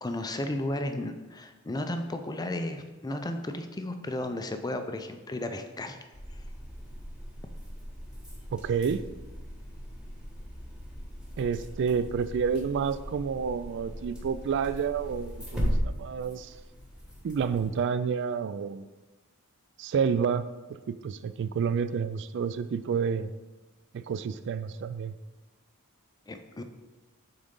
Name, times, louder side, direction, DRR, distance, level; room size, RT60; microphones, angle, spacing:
voice 1, 0.0-6.0 6.3-6.4 26.3-26.6, left 1 dB, 15° left, 7 dB, 0.4 m, -34 dB
sound 1, 6.1-17.8, equal, 5° right, 1.4 m, -38 dB
voice 2, 8.5-9.0 11.4-16.5 17.2-18.9 19.8-20.5 20.9-23.3 23.9-25.1, right 6 dB, 55° right, 13 dB, 0.3 m, -29 dB
8.6 x 3.9 x 3.7 m, 1.2 s
head